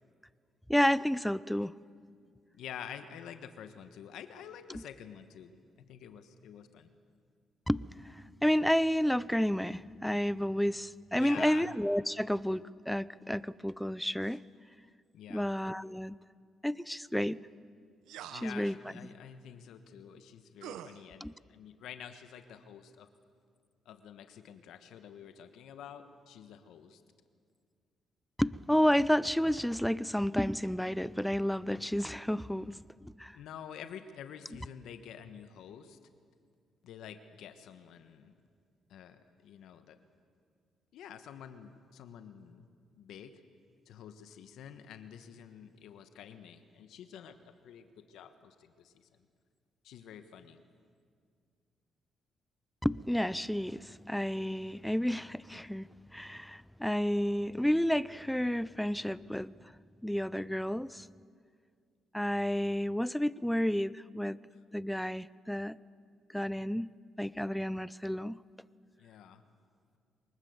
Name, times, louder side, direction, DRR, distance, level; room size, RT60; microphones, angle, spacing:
voice 1, 0.7-1.7 7.7-7.9 8.4-14.4 15.3-16.2 16.6-17.4 18.3-18.7 21.2-21.3 28.4-32.8 33.0-33.4 52.8-59.5 60.0-61.1 62.1-64.4 64.7-65.8 66.3-66.9 67.2-68.4, equal, 5° left, 19 dB, 0.5 m, -31 dB
voice 2, 2.5-6.9 11.1-11.7 14.2-14.4 15.1-15.5 18.3-23.1 23.8-27.0 33.3-36.0 36.8-38.3 38.9-40.0 40.9-42.6 42.9-43.3 43.8-49.1 49.8-50.6 64.5-64.6 69.0-69.4, left 8 dB, 80° left, 9 dB, 1.3 m, -48 dB
sound 1, 18.0-18.6 20.6-21.0, right 10 dB, 90° right, 0.9 m, -45 dB
23.5 x 20.0 x 8.1 m, 2.1 s
cardioid pair, 90°, 0 cm